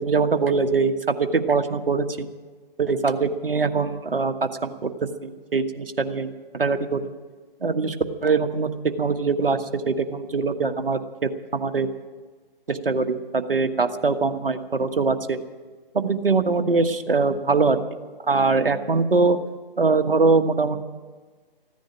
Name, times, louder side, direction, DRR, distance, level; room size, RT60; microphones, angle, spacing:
voice 1, 0.0-2.3 2.8-7.1 7.6-7.9 8.2-8.7 9.0-11.9 12.7-15.4 15.9-17.8 18.3-19.4 19.8-20.8, right 4 dB, 70° right, 7 dB, 1.4 m, -22 dB
15.5 x 10.5 x 8.7 m, 1.4 s
figure-of-eight pair, 145°, 29 cm